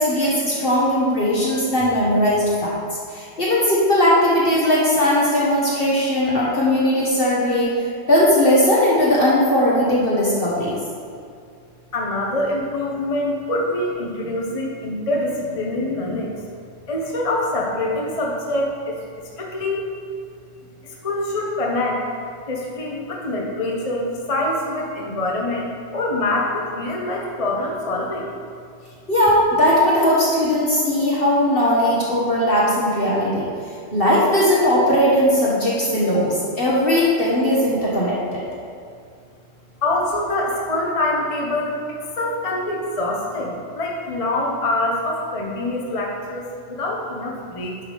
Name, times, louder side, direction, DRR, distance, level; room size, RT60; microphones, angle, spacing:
voice 1, 0.0-2.7 3.1-10.8 29.1-33.5 33.9-38.4, left 1 dB, 50° left, -7 dB, 1.5 m, -18 dB
voice 2, 11.9-16.4 16.9-19.9 20.8-22.0 22.5-28.3 39.8-47.8, left 1 dB, 30° left, -2 dB, 0.9 m, -25 dB
10.0 x 6.0 x 3.4 m, 2.4 s
omnidirectional pair, 1.3 m